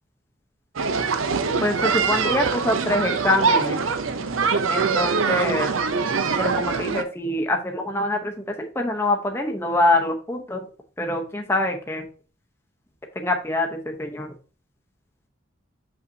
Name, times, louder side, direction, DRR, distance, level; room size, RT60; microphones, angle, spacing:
sound 1, 0.8-7.0, right 5 dB, 80° right, 0.6 m, -23 dB
voice 1, 1.6-3.8 4.7-5.7 6.4-10.6 11.0-12.0 13.2-14.3, left 1 dB, 10° left, 2 dB, 0.8 m, -25 dB
6.4 x 5.4 x 2.7 m, 0.37 s
head